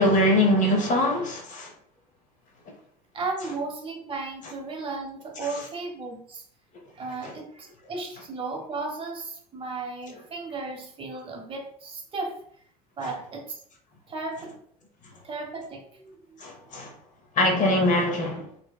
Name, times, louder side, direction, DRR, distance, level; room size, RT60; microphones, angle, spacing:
voice 1, 0.0-1.7 16.4-16.9 17.4-18.4, left 1 dB, 35° left, 0.8 m, -22 dB
voice 2, 3.1-6.4 6.9-12.4 13.0-13.6 14.1-14.6 15.2-16.1, right 3 dB, 25° right, 0.8 m, -35 dB
2.6 x 2.1 x 2.3 m
hypercardioid pair, 75°, 21 cm